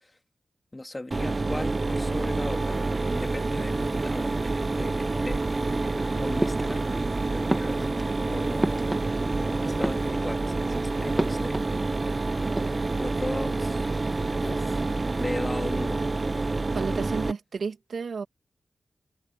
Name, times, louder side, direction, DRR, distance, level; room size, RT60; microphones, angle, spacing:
voice 1, 0.7-4.3 4.7-5.4 6.0-7.0 7.3-7.9 8.3-9.0 9.3-11.6 13.0-13.9 14.4-16.0, left 2 dB, 20° left, 3.1 m, -37 dB
Mechanisms, 1.1-17.3, right 3 dB, 30° right, 0.7 m, -27 dB
sound 1, 6.4-7.1 7.5-9.4 9.7-10.6 11.2-12.1 12.4-13.0, right 1 dB, 15° right, 1.9 m, -32 dB
voice 2, 16.7-18.3, right 5 dB, 75° right, 2.2 m, -32 dB
wide cardioid pair, 110°, 0 cm